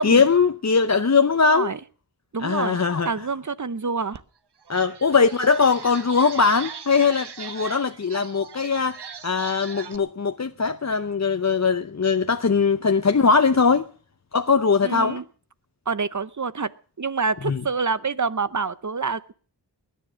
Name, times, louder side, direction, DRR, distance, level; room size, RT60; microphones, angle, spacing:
voice 1, 0.0-1.7 2.4-3.1 4.7-13.8 14.3-15.2 17.5-17.6, left 5 dB, 40° left, 0.8 m, -20 dB
voice 2, 1.5-1.8 2.3-2.8 3.0-4.2 14.8-15.2 15.9-16.7 17.0-19.3, right 4 dB, 45° right, 0.9 m, -27 dB
sound 1, 4.1-4.2 4.6-10.0, right 6 dB, 70° right, 1.0 m, -39 dB
20.5 x 10.0 x 6.3 m
wide cardioid pair, 55°, 42 cm